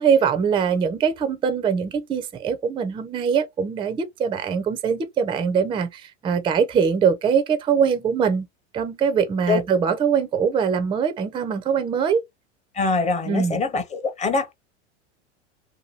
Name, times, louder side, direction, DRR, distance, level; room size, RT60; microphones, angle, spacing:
voice 1, 0.0-8.5 8.7-12.2 13.3-13.6, right 6 dB, 15° right, 0.4 m, -22 dB
voice 2, 12.7-14.5, left 4 dB, 20° left, 0.7 m, -23 dB
2.7 x 2.2 x 2.9 m
hypercardioid pair, 100°, 35 cm